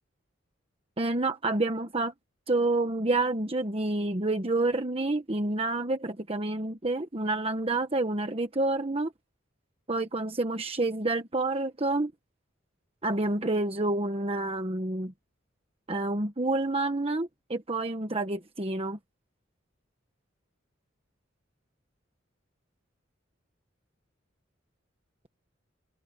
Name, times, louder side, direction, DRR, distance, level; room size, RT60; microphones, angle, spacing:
voice 1, 1.0-2.1 2.5-9.1 9.9-12.1 13.0-15.1 15.9-19.0, right 2 dB, 30° right, 1.2 m, -28 dB
open air
head